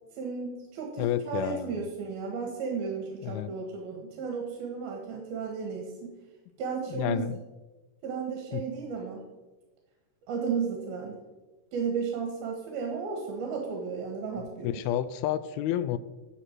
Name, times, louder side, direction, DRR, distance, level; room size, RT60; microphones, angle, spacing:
voice 1, 0.1-6.2 6.6-7.2 8.0-9.2 10.3-11.1 11.7-14.8, right 5 dB, 70° right, 1 dB, 3.3 m, -34 dB
voice 2, 1.0-1.9 3.2-3.5 6.9-7.4 8.5-8.6 14.6-16.0, left 11 dB, 80° left, 14 dB, 2.3 m, -30 dB
14.0 x 8.7 x 4.5 m, 1.1 s
omnidirectional pair, 4.5 m